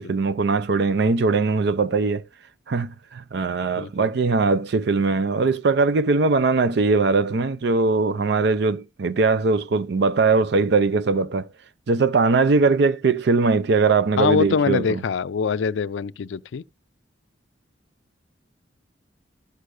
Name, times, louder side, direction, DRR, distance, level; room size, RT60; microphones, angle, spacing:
voice 1, 0.0-2.2 2.7-11.5 11.9-15.0, right 4 dB, 65° right, 0.5 m, -20 dB
voice 2, 3.7-4.1 14.2-16.6, left 5 dB, 80° left, 0.4 m, -24 dB
13.0 x 6.5 x 2.5 m
head